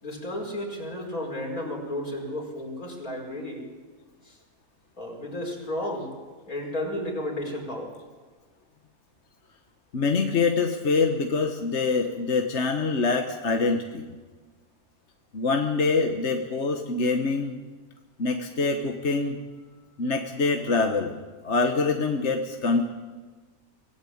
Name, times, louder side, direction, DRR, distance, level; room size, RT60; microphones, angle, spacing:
voice 1, 0.0-3.6 4.2-4.4 5.0-6.1 6.5-7.9, left 1 dB, 75° left, 0 dB, 5.4 m, -33 dB
voice 2, 9.9-14.1 15.3-17.6 18.2-19.4 20.0-22.8, left 4 dB, 50° left, 4 dB, 1.5 m, -25 dB
25.0 x 16.0 x 8.7 m, 1.4 s
omnidirectional pair, 1.5 m